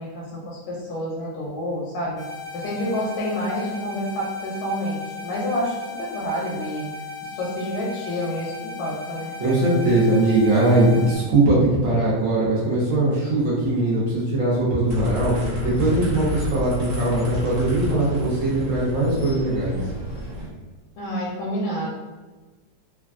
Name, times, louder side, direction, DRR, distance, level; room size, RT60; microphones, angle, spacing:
voice 1, 0.0-2.3 2.5-9.4 21.0-21.9, equal, 80° left, -5 dB, 1.4 m, -29 dB
sound 1, 2.2-11.2, left 4 dB, 45° left, 0.7 m, -36 dB
voice 2, 9.4-19.8, right 2 dB, 65° right, -6 dB, 0.8 m, -20 dB
sound 2, 14.9-20.5, left 1 dB, 40° right, 1.0 m, -31 dB
3.3 x 2.2 x 2.4 m, 1.3 s
omnidirectional pair, 2.2 m